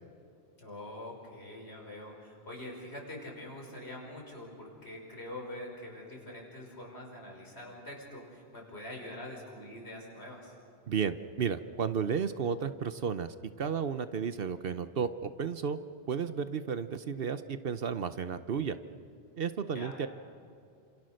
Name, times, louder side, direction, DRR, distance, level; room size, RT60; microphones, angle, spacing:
voice 1, 0.6-10.5 19.7-20.0, left 1 dB, 65° left, -1 dB, 5.9 m, -44 dB
voice 2, 10.9-15.8 16.1-18.8 19.4-20.1, right 6 dB, 60° right, 12 dB, 0.9 m, -33 dB
29.5 x 27.0 x 6.5 m, 2.4 s
omnidirectional pair, 1.1 m